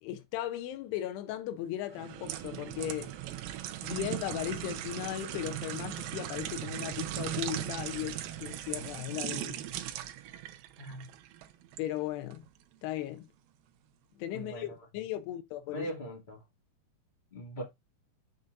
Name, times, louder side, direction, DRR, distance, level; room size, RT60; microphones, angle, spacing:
voice 1, 0.0-3.1 3.8-9.7 11.8-12.5 12.8-13.3 14.2-15.9, left 13 dB, 90° left, 2.7 m, -37 dB
sound 1, 1.9-11.9 12.3-12.5, right 12 dB, 80° right, 2.5 m, -38 dB
voice 2, 14.3-14.7 15.7-16.4 17.3-17.6, right 1 dB, 20° left, 1.3 m, -40 dB
8.1 x 6.9 x 2.5 m
omnidirectional pair, 4.8 m